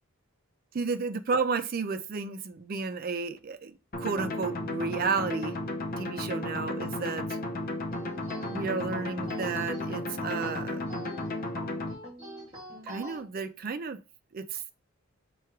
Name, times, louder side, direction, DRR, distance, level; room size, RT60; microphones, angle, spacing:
voice 1, 0.7-5.6 6.0-7.4 8.5-10.8 12.8-14.0 14.3-14.6, right 4 dB, 40° right, 11 dB, 0.4 m, -32 dB
sound 1, 3.9-11.9, left 1 dB, 40° left, 0.7 m, -34 dB
sound 2, 7.9-13.2, equal, 25° right, 2.1 m, -44 dB
3.6 x 3.1 x 4.4 m, 0.32 s
head